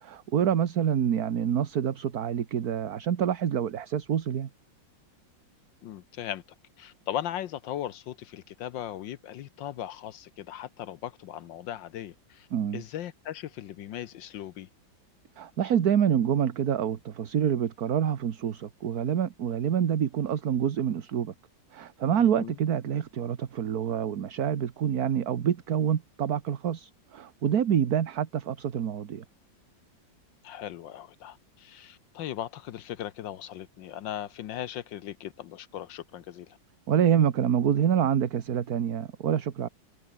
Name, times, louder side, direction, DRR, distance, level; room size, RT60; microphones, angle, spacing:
voice 1, 0.0-4.5 12.5-12.8 15.4-21.3 21.7-29.2 36.9-39.7, right 9 dB, 55° right, 1.6 m, -27 dB
voice 2, 5.8-6.4 6.8-12.5 12.7-14.7 22.2-22.6 30.4-36.6, left 11 dB, 75° left, 1.5 m, -38 dB
omnidirectional pair, 2.1 m